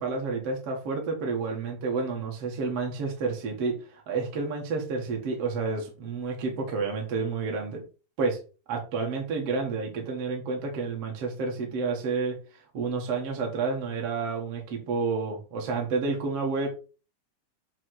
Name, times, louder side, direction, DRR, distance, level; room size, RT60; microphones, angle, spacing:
voice 1, 0.0-7.8 8.2-8.4 8.7-12.4 12.7-16.7, right 4 dB, 50° right, 1 dB, 2.3 m, -30 dB
7.9 x 3.5 x 6.4 m, 0.34 s
omnidirectional pair, 3.8 m